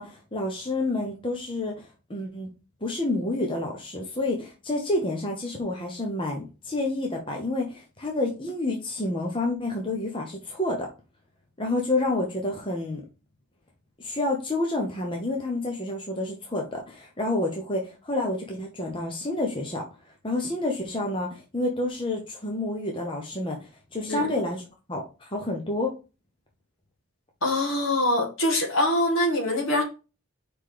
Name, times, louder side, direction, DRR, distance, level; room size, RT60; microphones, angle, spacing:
voice 1, 0.0-2.5 2.8-10.9 11.6-13.0 14.0-19.9 20.2-24.6 24.9-25.9, left 2 dB, 25° left, 0 dB, 1.0 m, -29 dB
voice 2, 27.4-29.8, left 1 dB, 65° left, 2 dB, 2.0 m, -24 dB
5.1 x 4.1 x 4.9 m, 0.30 s
head